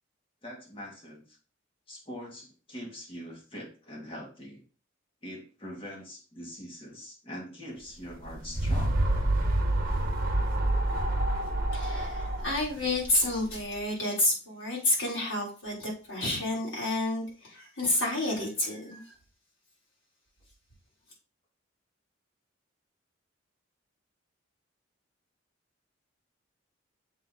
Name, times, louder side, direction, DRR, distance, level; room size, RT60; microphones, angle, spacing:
voice 1, 0.4-1.4 1.9-4.6 5.2-9.0, equal, 30° left, -1 dB, 2.1 m, -43 dB
sound 1, 8.1-13.7, right 1 dB, 50° right, 1.3 m, -28 dB
voice 2, 11.7-19.0, left 1 dB, 70° left, -4 dB, 3.9 m, -30 dB
7.4 x 3.8 x 4.1 m, 0.36 s
head